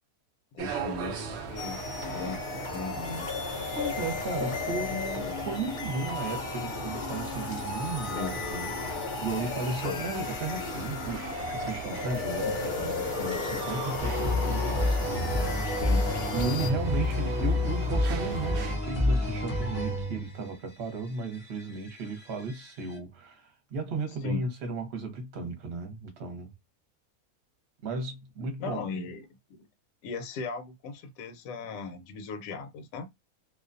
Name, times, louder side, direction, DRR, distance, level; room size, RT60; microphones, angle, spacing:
voice 1, 0.5-1.8 2.1-3.3 8.0-8.4 9.8-10.0 15.8-16.1 24.2-24.4 28.6-29.3 30.0-33.1, left 4 dB, 75° left, 1.0 m, -37 dB
sound 1, 0.6-18.8, right 5 dB, 70° right, 0.6 m, -39 dB
sound 2, 1.6-16.7, left 4 dB, 55° left, 0.6 m, -34 dB
voice 2, 3.7-15.9 16.3-26.5 27.8-28.8, right 3 dB, 50° right, 0.9 m, -35 dB
sound 3, 14.0-20.5 21.4-22.6 22.9-23.0, left 2 dB, 10° left, 0.6 m, -28 dB
2.5 x 2.2 x 2.5 m
omnidirectional pair, 1.6 m